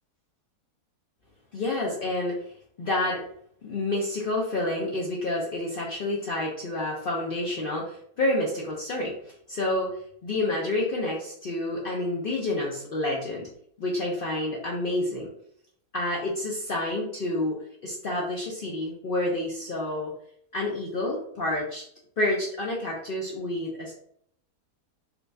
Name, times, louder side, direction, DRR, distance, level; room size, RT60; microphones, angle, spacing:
voice 1, 1.5-2.4 2.8-3.2 3.6-9.1 9.5-9.9 10.2-13.5 13.8-15.3 15.9-17.6 17.8-20.1 20.5-21.8 22.2-23.9, left 2 dB, 75° left, -3 dB, 0.5 m, -29 dB
4.1 x 2.2 x 2.6 m, 0.66 s
omnidirectional pair, 1.7 m